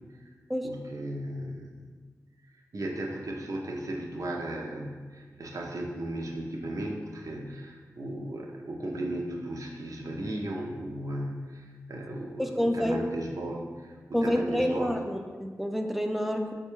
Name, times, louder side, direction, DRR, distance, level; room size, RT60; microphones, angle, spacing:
voice 1, 0.6-1.9 2.7-14.9, right 1 dB, 60° right, -1 dB, 0.5 m, -36 dB
voice 2, 12.4-13.0 14.1-16.5, equal, ahead, 4 dB, 0.3 m, -28 dB
3.9 x 2.2 x 3.0 m, 1.5 s
cardioid pair, 50°, 6 cm